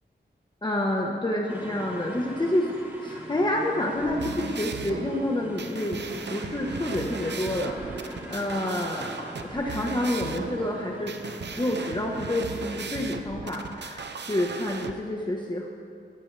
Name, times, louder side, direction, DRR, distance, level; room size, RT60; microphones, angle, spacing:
voice 1, 0.6-2.7 3.0-11.2 11.6-15.7, left 1 dB, 25° left, -1 dB, 1.3 m, -28 dB
sound 1, 1.5-12.8, equal, 10° right, 2.9 m, -42 dB
sound 2, 4.0-14.9, right 5 dB, 70° right, 0.9 m, -37 dB
22.0 x 16.0 x 3.5 m, 2.4 s
wide cardioid pair, 115°, 18 cm